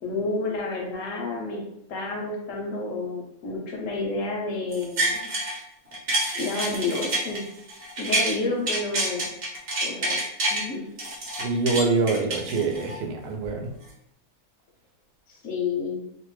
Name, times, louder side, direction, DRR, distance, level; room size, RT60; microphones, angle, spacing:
voice 1, 0.0-1.6 1.9-5.3 6.4-7.4 8.0-9.3 9.8-10.2 10.5-10.8 15.3-16.0, left 3 dB, 70° left, 0 dB, 0.9 m, -30 dB
sound 1, 4.7-5.6 5.9-8.3 8.7-10.6 11.0-13.0 13.4-13.5, right 1 dB, 45° right, 0.9 m, -27 dB
voice 2, 11.4-13.7, right 4 dB, 85° right, 2 dB, 1.1 m, -25 dB
2.7 x 2.2 x 3.0 m, 0.81 s
omnidirectional pair, 1.6 m